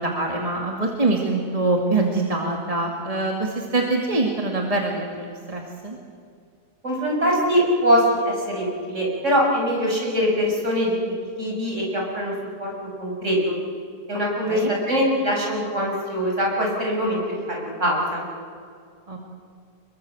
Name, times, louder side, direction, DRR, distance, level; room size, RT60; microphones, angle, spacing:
voice 1, 0.0-6.0 14.5-14.7 19.1-19.2, right 2 dB, 20° right, 0 dB, 2.3 m, -24 dB
voice 2, 6.8-10.9 11.4-12.3 12.6-12.7 13.0-13.6 14.1-18.2, equal, 50° right, -2 dB, 6.6 m, -22 dB
26.5 x 22.0 x 7.8 m, 2.3 s
omnidirectional pair, 1.7 m